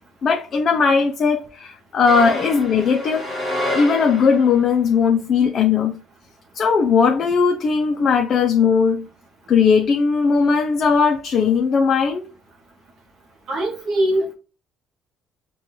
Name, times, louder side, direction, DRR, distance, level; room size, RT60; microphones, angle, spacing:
voice 1, 0.2-3.3 3.7-6.0 6.5-9.1 9.5-12.3, left 5 dB, 35° left, 0.4 m, -18 dB
sound 1, 2.0-4.7, left 1 dB, ahead, 1.1 m, -28 dB
voice 2, 13.5-14.3, right 1 dB, 40° right, 0.6 m, -21 dB
6.2 x 2.2 x 2.8 m
cardioid pair, 170°, 0 cm